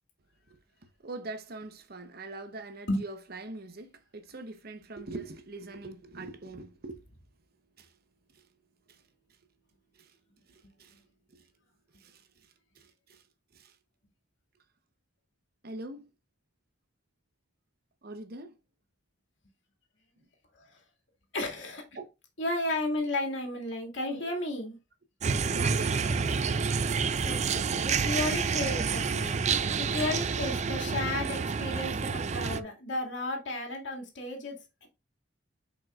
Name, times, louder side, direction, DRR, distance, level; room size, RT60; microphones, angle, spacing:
voice 1, 1.0-7.0 7.8-7.9 8.3-8.5 8.9-9.0 9.9-10.2 10.5-11.0 11.3-11.4 12.0-13.2 13.5-13.8 15.6-16.1 18.0-18.6 21.9-22.1 24.0-24.3 25.5-26.5, right 2 dB, 55° right, 0.9 m, -43 dB
voice 2, 21.3-21.8 22.4-24.8 27.2-29.4 29.8-34.9, left 2 dB, 75° left, 2.2 m, -33 dB
sound 1, 25.2-32.6, right 5 dB, 35° right, 0.4 m, -29 dB
7.3 x 5.3 x 2.4 m
head